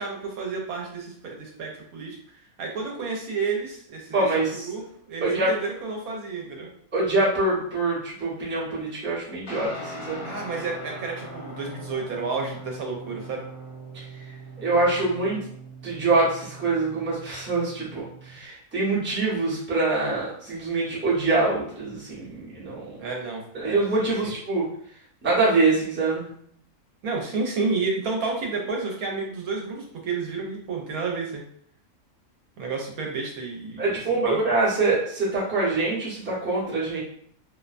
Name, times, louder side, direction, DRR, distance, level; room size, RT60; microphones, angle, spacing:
voice 1, 0.0-6.7 10.2-13.4 23.0-24.3 27.0-31.4 32.6-34.4, right 4 dB, 75° right, 0 dB, 1.0 m, -31 dB
voice 2, 4.1-4.7 5.2-5.5 6.9-10.2 14.6-15.4 15.8-22.9 23.5-24.6 25.2-26.3 33.8-37.0, right 3 dB, 10° right, -8 dB, 0.6 m, -24 dB
Guitar, 9.5-18.4, right 1 dB, 75° left, 1.1 m, -41 dB
2.6 x 2.1 x 2.4 m, 0.63 s
omnidirectional pair, 1.6 m